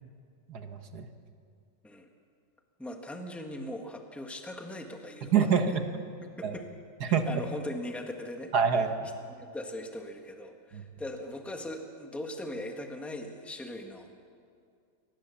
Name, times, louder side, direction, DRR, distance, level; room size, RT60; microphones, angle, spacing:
voice 1, 0.5-1.1 5.2-5.9 6.4-6.5 7.0-7.4 8.5-9.1 10.7-10.8, right 6 dB, 55° right, 7 dB, 1.7 m, -26 dB
voice 2, 2.8-5.8 6.2-6.7 7.0-8.5 9.4-14.1, left 1 dB, ahead, 3 dB, 1.4 m, -40 dB
22.0 x 20.0 x 7.1 m, 2.3 s
omnidirectional pair, 2.1 m